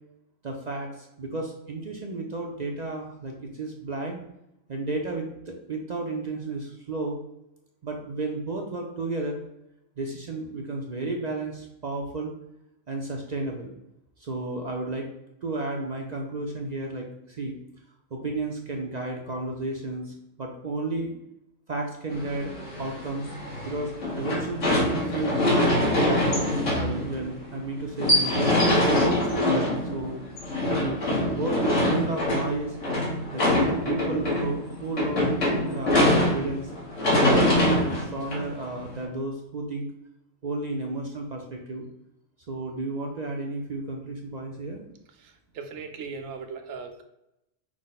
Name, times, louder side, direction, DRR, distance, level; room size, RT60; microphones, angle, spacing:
voice 1, 0.4-4.2 4.7-7.2 7.8-9.4 10.0-12.3 12.9-13.7 14.2-15.1 15.4-17.5 18.1-21.1 21.7-23.3 23.6-26.0 26.7-30.2 30.7-32.8 33.3-36.7 37.1-39.9 40.4-41.8 42.5-44.8, right 2 dB, 50° right, 1 dB, 0.5 m, -32 dB
sound 1, 22.1-39.0, left 1 dB, 70° left, 1.6 m, -24 dB
voice 2, 45.2-47.0, right 5 dB, 80° right, 5 dB, 1.1 m, -38 dB
6.1 x 2.1 x 4.0 m, 0.85 s
omnidirectional pair, 1.4 m